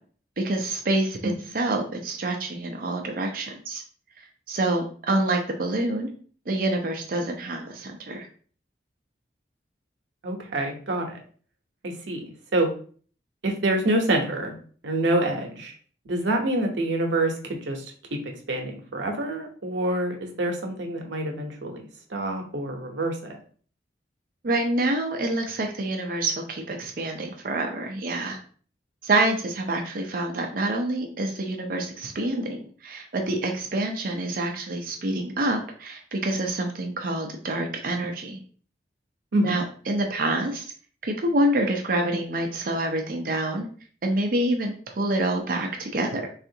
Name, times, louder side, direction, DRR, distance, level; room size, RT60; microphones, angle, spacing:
voice 1, 0.4-3.8 4.5-6.1 6.5-8.3 24.4-28.4 29.0-38.4 39.4-40.7 41.0-43.7 44.0-46.3, right 1 dB, 50° right, 3 dB, 0.5 m, -27 dB
voice 2, 10.2-11.2 11.8-12.2 12.5-12.7 13.4-14.5 14.8-15.7 16.1-17.9 18.5-21.8 22.1-23.4 39.3-39.6, right 1 dB, 85° right, 2 dB, 0.7 m, -26 dB
3.5 x 2.4 x 2.7 m, 0.44 s
head